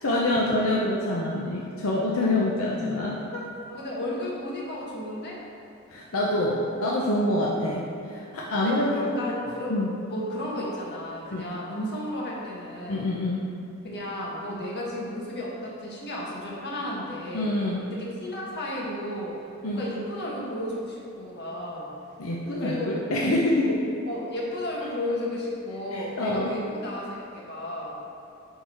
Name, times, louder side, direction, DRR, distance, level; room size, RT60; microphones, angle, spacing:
voice 1, 0.0-3.5 5.9-9.2 9.7-9.9 11.3-11.5 12.9-13.5 17.3-17.8 19.6-19.8 22.2-23.8 25.9-26.5, left 1 dB, 75° left, -4 dB, 0.8 m, -26 dB
voice 2, 3.7-5.4 8.6-9.8 10.0-13.1 13.8-17.5 17.9-21.9 22.6-22.9 23.2-23.4 24.1-28.0, left 1 dB, 50° left, -4 dB, 1.7 m, -33 dB
10.5 x 4.0 x 4.6 m, 2.8 s
head